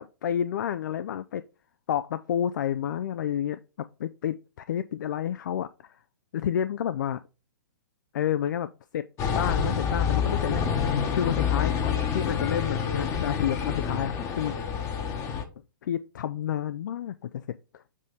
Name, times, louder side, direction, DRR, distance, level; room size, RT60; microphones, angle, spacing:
voice 1, 0.0-1.4 1.9-6.0 6.3-7.2 8.1-10.6 10.9-14.6 15.8-17.4 17.7-17.8, left 9 dB, 65° left, 0.4 m, -30 dB
sound 1, 9.2-15.4, left 7 dB, 30° left, 1.0 m, -27 dB
7.4 x 2.7 x 4.9 m
hypercardioid pair, 120°, 11 cm